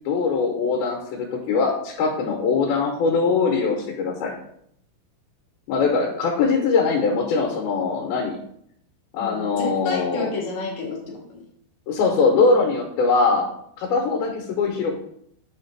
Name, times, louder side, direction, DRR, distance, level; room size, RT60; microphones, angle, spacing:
voice 1, 0.1-4.3 5.7-8.4 9.1-10.3 11.9-13.5 13.8-15.0, left 4 dB, 85° left, 0 dB, 2.6 m, -22 dB
voice 2, 9.2-11.4, left 3 dB, 65° left, -1 dB, 2.1 m, -31 dB
7.6 x 3.2 x 4.5 m, 0.71 s
omnidirectional pair, 4.4 m